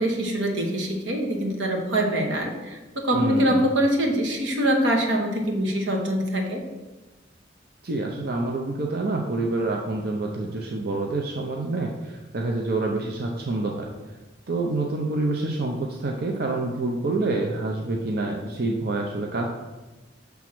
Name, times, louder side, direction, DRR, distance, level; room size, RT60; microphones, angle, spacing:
voice 1, 0.0-6.6, equal, 85° right, 1 dB, 1.2 m, -24 dB
voice 2, 3.1-3.6 7.8-13.9 14.5-19.5, right 2 dB, 55° right, 1 dB, 0.6 m, -27 dB
6.1 x 3.5 x 6.0 m, 1.1 s
head